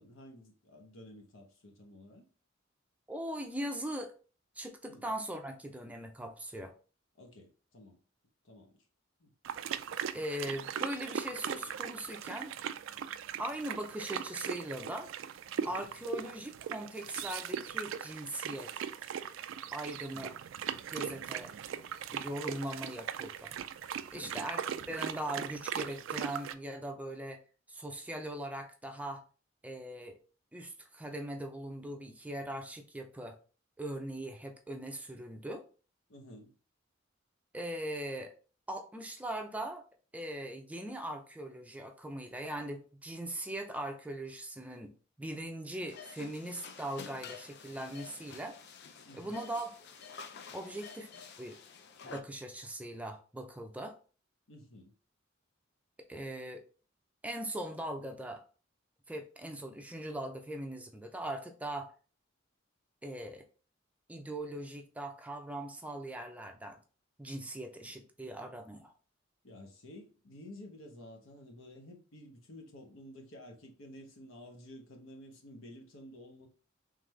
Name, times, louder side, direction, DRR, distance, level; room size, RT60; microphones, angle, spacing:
voice 1, 0.0-2.2 4.9-5.1 7.1-8.0 8.4-8.7 9.2-9.3 15.6-15.9 20.1-20.3 24.1-24.4 36.1-36.5 49.0-49.4 54.5-54.9 67.9-68.0 69.4-76.5, left 1 dB, 80° left, 1.0 m, -52 dB
voice 2, 3.1-4.1 4.6-6.7 10.1-12.5 13.4-15.1 15.6-18.7 19.0-19.1 19.7-20.3 20.9-21.7 22.1-23.5 24.1-27.4 27.7-29.2 29.6-30.2 30.5-33.4 33.8-35.6 37.5-38.3 38.7-39.8 40.1-48.6 49.1-49.8 50.5-51.1 51.4-51.6 52.0-54.0 56.1-56.6 57.2-58.4 59.1-61.9 63.0-63.5 64.1-66.8 67.2-68.9, right 1 dB, 5° right, 0.5 m, -40 dB
sound 1, 9.4-26.5, right 8 dB, 65° right, 0.3 m, -39 dB
sound 2, 45.9-52.2, left 5 dB, 55° left, 0.5 m, -49 dB
3.8 x 3.3 x 3.2 m
head